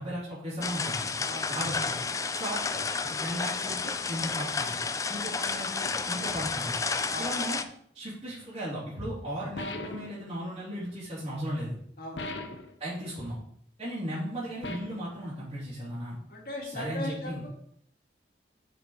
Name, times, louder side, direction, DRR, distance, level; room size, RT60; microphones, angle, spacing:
voice 1, 0.0-1.1 1.5-2.0 2.3-4.8 5.1-6.8 7.2-7.6 7.9-11.7 12.8-13.4 13.8-16.2 16.7-17.4, equal, 35° right, -10 dB, 3.2 m, -36 dB
sound 1, 0.6-7.6, left 4 dB, 20° left, 0.4 m, -31 dB
sound 2, 9.6-10.2 12.2-12.7 14.6-15.1, left 2 dB, 85° left, 0.8 m, -37 dB
voice 2, 12.0-12.3 16.3-17.5, left 1 dB, 55° left, -2 dB, 2.3 m, -38 dB
7.2 x 5.3 x 4.7 m, 0.66 s
head